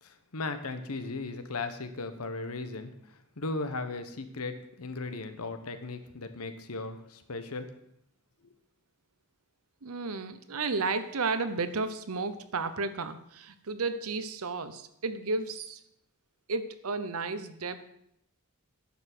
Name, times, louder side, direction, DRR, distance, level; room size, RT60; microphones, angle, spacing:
voice 1, 0.0-7.7, left 3 dB, 80° left, 9 dB, 1.0 m, -37 dB
voice 2, 9.8-15.8 16.5-17.9, right 3 dB, 75° right, 11 dB, 0.8 m, -33 dB
10.5 x 7.0 x 6.0 m, 0.75 s
head